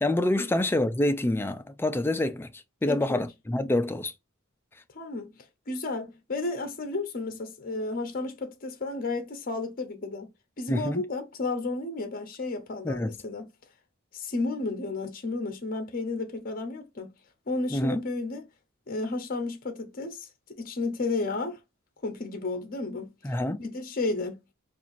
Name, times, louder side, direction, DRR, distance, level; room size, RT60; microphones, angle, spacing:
voice 1, 0.0-4.1 10.7-11.0 12.8-13.1 17.7-18.0 23.2-23.6, left 1 dB, 10° left, 0.3 m, -27 dB
voice 2, 2.8-3.2 4.9-5.3 5.7-10.3 10.6-13.5 14.1-17.1 17.5-18.5 18.9-21.6 22.0-23.1 23.6-24.4, left 3 dB, 45° left, 0.7 m, -32 dB
4.4 x 2.5 x 2.5 m
head